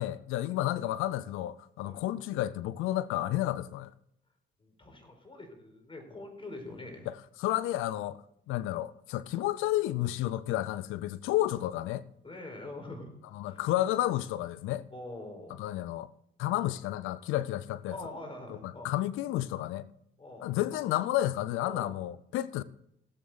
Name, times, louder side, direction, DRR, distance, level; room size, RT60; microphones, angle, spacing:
voice 1, 0.0-3.9 7.1-8.2 8.5-12.1 13.3-14.9 15.5-16.1 16.4-17.9 18.8-19.9 20.4-22.6, left 14 dB, 85° left, 0.6 m, -31 dB
voice 2, 4.6-7.1 9.3-9.4 12.2-13.1 13.4-13.6 14.9-15.6 17.9-18.9 20.2-20.5 21.6-21.9, left 2 dB, 25° left, 4.6 m, -44 dB
17.5 x 8.0 x 3.9 m
supercardioid pair, 65°, 20 cm